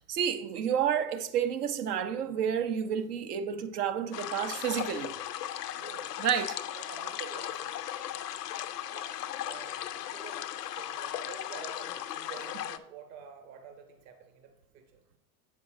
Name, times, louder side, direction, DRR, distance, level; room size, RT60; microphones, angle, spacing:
voice 1, 0.1-5.1 6.2-6.6, right 8 dB, 75° right, 0.8 m, -30 dB
sound 1, 4.1-12.8, left 11 dB, 85° left, 0.6 m, -37 dB
voice 2, 5.8-6.1 6.7-7.8 8.9-9.1 9.4-15.2, right 6 dB, 55° right, 1.4 m, -49 dB
8.1 x 5.8 x 3.8 m
hypercardioid pair, 80°, 46 cm